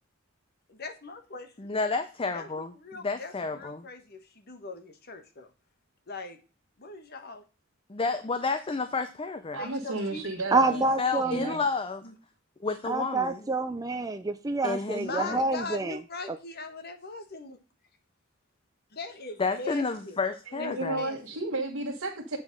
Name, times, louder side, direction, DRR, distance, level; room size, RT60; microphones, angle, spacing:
voice 1, 0.7-1.7 2.3-5.5 6.1-6.4 6.8-7.4 9.6-10.3 12.0-12.1 15.0-17.6 18.9-20.2 20.6-21.4, left 3 dB, 50° left, 1.4 m, -40 dB
voice 2, 1.6-2.7 3.0-3.9 7.9-9.6 10.7-12.0 12.6-13.5 14.6-15.4 19.4-21.0, left 4 dB, 25° left, 0.6 m, -31 dB
voice 3, 9.5-10.9 11.2-11.6 20.5-22.4, right 2 dB, 75° right, 1.7 m, -33 dB
voice 4, 10.5-11.6 12.9-16.0, right 3 dB, 15° right, 0.5 m, -27 dB
8.0 x 5.1 x 5.3 m
head